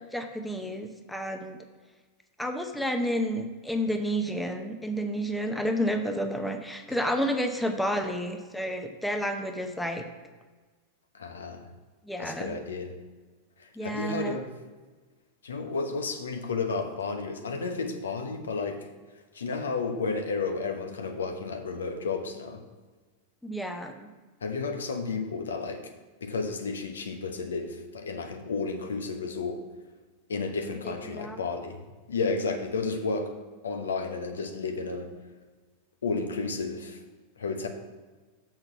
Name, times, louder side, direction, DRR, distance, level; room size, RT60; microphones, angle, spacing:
voice 1, 0.1-1.6 2.4-10.1 12.0-12.6 13.8-14.4 23.4-24.1 30.8-31.4, equal, 5° left, 5 dB, 0.8 m, -30 dB
voice 2, 11.1-11.7 12.2-13.0 13.6-14.5 15.4-18.9 19.3-22.6 24.4-25.9 26.2-29.6 30.3-33.4 33.6-35.1 36.0-37.0 37.4-37.7, left 4 dB, 70° left, 5 dB, 1.0 m, -32 dB
6.7 x 6.1 x 5.9 m, 1.3 s
figure-of-eight pair, 90°, 0 cm